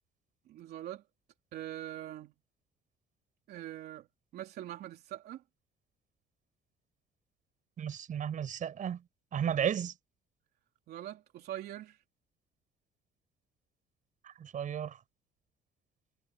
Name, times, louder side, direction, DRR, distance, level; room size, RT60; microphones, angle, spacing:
voice 1, 0.5-1.0 1.5-2.3 3.5-4.1 4.3-5.4 9.6-9.7 10.9-12.0, right 12 dB, 70° right, 3.1 m, -43 dB
voice 2, 7.8-9.0 9.3-9.9 14.2-15.0, right 9 dB, 50° right, 5.1 m, -33 dB
cardioid pair, 110°, 17 cm